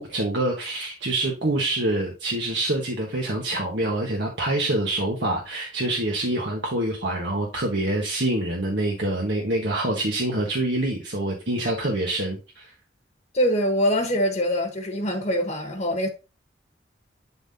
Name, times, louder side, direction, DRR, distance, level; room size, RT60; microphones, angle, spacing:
voice 1, 0.0-12.7, right 1 dB, 65° right, 1.4 m, -26 dB
voice 2, 13.3-16.1, equal, 35° left, 1.3 m, -23 dB
11.0 x 3.8 x 2.8 m
head